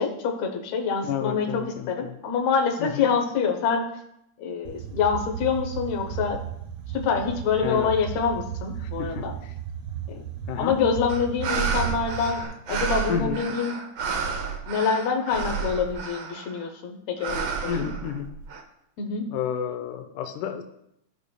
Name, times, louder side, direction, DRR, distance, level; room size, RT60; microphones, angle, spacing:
voice 1, 0.0-1.5 1.9-3.9 4.4-6.4 6.9-9.3 10.1-10.2 10.6-12.4 12.7-13.7 14.3-17.9 19.0-19.3, left 6 dB, 70° left, 4 dB, 2.1 m, -26 dB
voice 2, 1.0-2.2 2.8-3.1 7.6-7.9 8.8-9.5 10.5-10.8 13.1-13.4 17.7-18.3 19.3-20.6, left 8 dB, 90° left, 7 dB, 2.1 m, -31 dB
sound 1, 4.7-12.5, right 9 dB, 70° right, 2.0 m, -35 dB
sound 2, 11.1-16.6 17.2-18.6, right 6 dB, 85° right, 1.1 m, -31 dB
14.5 x 5.1 x 2.3 m, 0.76 s
omnidirectional pair, 3.5 m